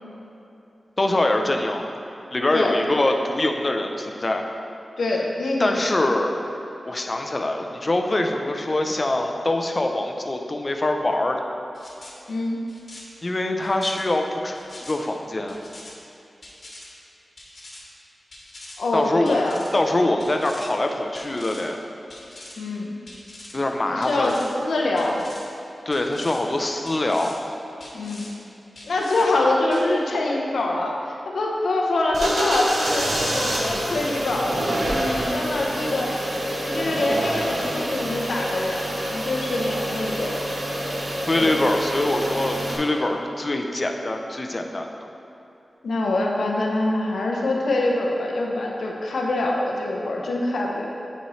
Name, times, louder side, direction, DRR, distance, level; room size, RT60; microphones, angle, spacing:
voice 1, 1.0-1.9 2.3-4.5 5.6-6.3 6.8-11.4 13.2-15.6 18.9-19.4 19.7-21.8 23.5-24.4 25.9-27.3 41.3-44.9, left 2 dB, 35° left, 3 dB, 0.6 m, -24 dB
voice 2, 5.0-5.8 12.3-12.6 18.8-19.6 22.6-22.9 23.9-25.2 27.9-28.3 28.9-36.1 36.6-40.4 41.4-41.6 45.8-50.9, left 2 dB, 90° left, -1 dB, 0.8 m, -25 dB
sound 1, 11.7-12.1 12.7-13.0 13.6-14.0 14.5-14.9 15.5-15.9 16.4-16.9 17.4-17.8 18.3-18.8 19.3-19.7 20.2-20.7 21.1-21.6 22.1-22.6 23.1-23.5 24.0-24.5 24.9-25.4 25.9-26.4 26.9-27.4 27.8-28.3 28.8-29.3 29.7-29.9, left 1 dB, 50° left, 1.3 m, -43 dB
sound 2, 32.1-42.8, right 1 dB, 80° right, 1.1 m, -27 dB
10.0 x 4.3 x 3.1 m, 2.8 s
wide cardioid pair, 80°, 0 cm